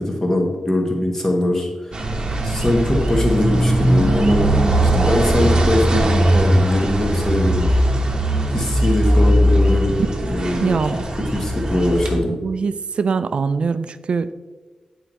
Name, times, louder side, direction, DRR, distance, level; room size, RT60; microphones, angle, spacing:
voice 1, 0.0-4.5 4.8-7.7 8.5-10.8 11.3-12.4, left 1 dB, 20° left, 1 dB, 1.3 m, -22 dB
sound 1, 1.9-12.2, right 1 dB, 35° right, 1.0 m, -19 dB
voice 2, 10.6-11.0 12.3-14.3, right 5 dB, 55° right, 14 dB, 0.3 m, -22 dB
8.9 x 4.6 x 4.0 m, 1.3 s
wide cardioid pair, 155°, 2 cm